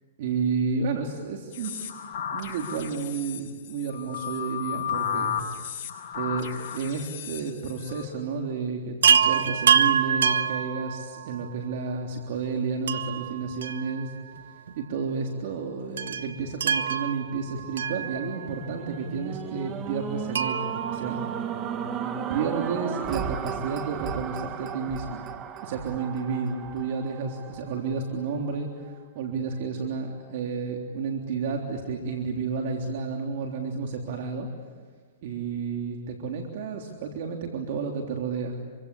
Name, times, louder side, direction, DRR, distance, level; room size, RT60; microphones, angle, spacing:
voice 1, 0.2-1.9 2.3-5.3 6.1-6.5 6.7-14.1 14.4-21.2 22.3-25.3 25.6-34.5 35.2-38.6, right 5 dB, 60° right, 2 dB, 3.5 m, -31 dB
sound 1, 1.5-8.0, left 8 dB, 45° left, 7.1 m, -34 dB
Chime, 9.0-11.5 12.9-14.4 14.7-14.8 16.0-18.7 20.3-21.9 23.5-23.6 23.8-23.9, right 7 dB, 85° right, 1.1 m, -26 dB
sound 2, 18.0-28.3 28.9-29.0, right 8 dB, 25° right, 1.8 m, -35 dB
26.5 x 25.0 x 8.6 m, 1.5 s
hypercardioid pair, 145°, 0 cm